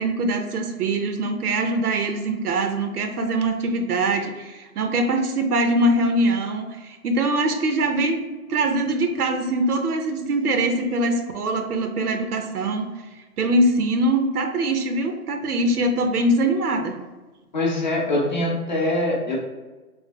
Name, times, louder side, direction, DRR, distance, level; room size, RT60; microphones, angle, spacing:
voice 1, 0.0-8.2 8.5-12.9 13.4-17.0, right 1 dB, 75° right, 5 dB, 0.7 m, -23 dB
voice 2, 17.5-19.4, left 1 dB, 30° left, -3 dB, 0.6 m, -23 dB
3.2 x 2.6 x 3.0 m, 1.2 s
hypercardioid pair, 160°, 45 cm